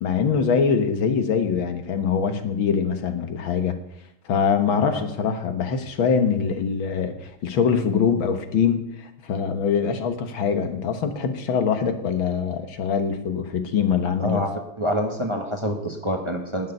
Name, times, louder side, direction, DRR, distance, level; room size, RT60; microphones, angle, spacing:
voice 1, 0.0-3.8 4.3-14.5, left 6 dB, 75° left, 7 dB, 2.0 m, -23 dB
voice 2, 14.2-16.7, equal, 15° right, 2 dB, 1.4 m, -27 dB
12.0 x 6.7 x 9.7 m, 0.77 s
omnidirectional pair, 2.2 m